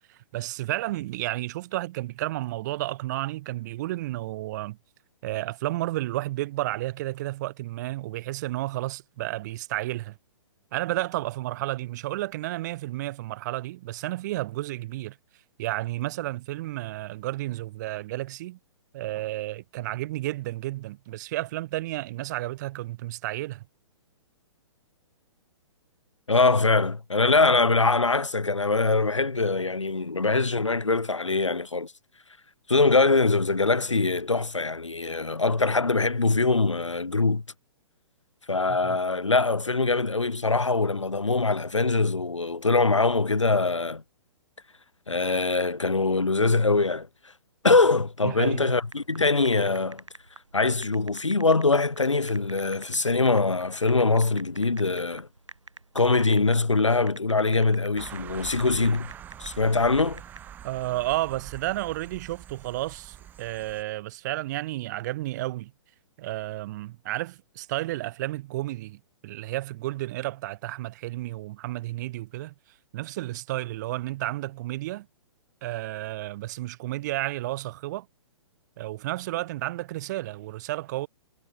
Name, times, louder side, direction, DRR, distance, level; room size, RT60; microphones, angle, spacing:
voice 1, 0.1-4.8 5.2-10.2 10.7-15.2 15.6-18.6 18.9-23.6 38.7-39.0 48.2-48.8 60.6-65.7 66.2-72.5 72.9-75.1 75.6-78.1 78.8-81.1, right 17 dB, 35° right, 1.2 m, -32 dB
voice 2, 26.3-31.9 32.7-37.4 38.5-44.0 45.1-47.1 47.6-50.0 50.5-55.3 55.9-59.1 59.4-60.2, left 3 dB, 85° left, 0.9 m, -23 dB
sound 1, 48.8-60.5, right 2 dB, 85° right, 1.3 m, -47 dB
sound 2, 58.0-63.8, right 10 dB, 10° right, 0.5 m, -44 dB
figure-of-eight pair, 120°, 15 cm